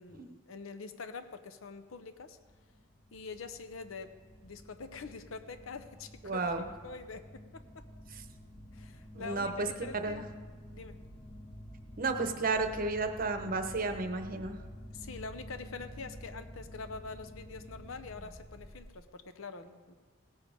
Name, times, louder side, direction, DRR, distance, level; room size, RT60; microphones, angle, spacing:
voice 1, 0.0-2.4 3.1-7.8 8.7-10.2 10.7-11.0 14.9-19.9, left 4 dB, 70° left, 9 dB, 0.7 m, -45 dB
sound 1, 1.6-19.0, equal, 30° left, 0.9 m, -50 dB
voice 2, 6.2-6.6 9.1-9.7 9.9-10.2 12.0-14.6, right 3 dB, 40° right, 7 dB, 0.8 m, -32 dB
17.5 x 7.2 x 5.0 m, 1.4 s
head